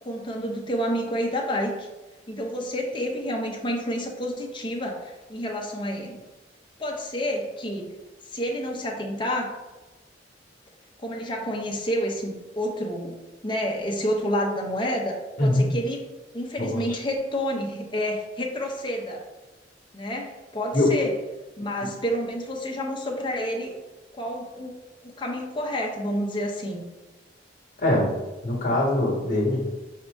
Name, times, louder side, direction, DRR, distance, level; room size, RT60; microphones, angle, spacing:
voice 1, 0.0-1.9 2.3-6.2 6.8-7.9 8.3-9.6 11.0-13.1 13.4-16.0 16.3-19.2 19.9-21.1 21.6-23.7 24.1-24.7 25.0-26.8, equal, 25° left, 0 dB, 0.7 m, -29 dB
voice 2, 15.4-15.7 16.6-16.8 20.7-20.9 21.8-21.9 27.8-28.1 28.4-29.7, left 1 dB, 50° left, -2 dB, 1.2 m, -22 dB
5.3 x 2.8 x 3.5 m, 1.1 s
head